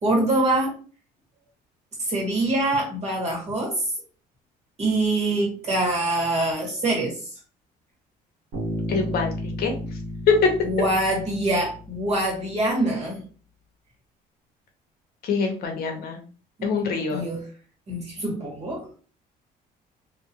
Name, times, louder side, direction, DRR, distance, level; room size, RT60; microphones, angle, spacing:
voice 1, 0.0-0.7 2.0-3.8 4.8-7.2 10.6-13.2 16.6-16.7 17.1-17.4 17.9-18.9, right 2 dB, 40° right, -2 dB, 1.5 m, -24 dB
Bass guitar, 8.5-12.3, equal, 70° right, 1.4 m, -33 dB
voice 2, 8.9-9.3 9.6-9.7 10.3-10.5 15.2-16.2 16.6-17.2, left 5 dB, 65° left, 3 dB, 0.9 m, -23 dB
2.7 x 2.6 x 2.9 m, 0.40 s
cardioid pair, 110°, 17 cm